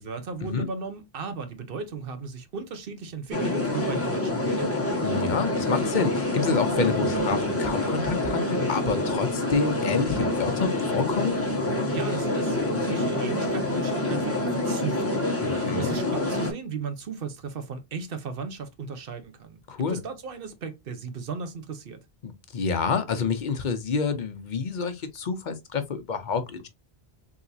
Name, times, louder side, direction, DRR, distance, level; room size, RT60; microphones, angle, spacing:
voice 1, 0.0-5.0 11.9-19.6 19.9-22.0, right 5 dB, 65° right, 1.0 m, -36 dB
sound 1, 3.3-16.5, left 1 dB, 15° left, 0.9 m, -27 dB
voice 2, 5.0-11.3 15.4-15.9 19.7-20.0 22.2-26.7, left 5 dB, 55° left, 0.8 m, -28 dB
3.8 x 2.9 x 2.6 m
omnidirectional pair, 1.0 m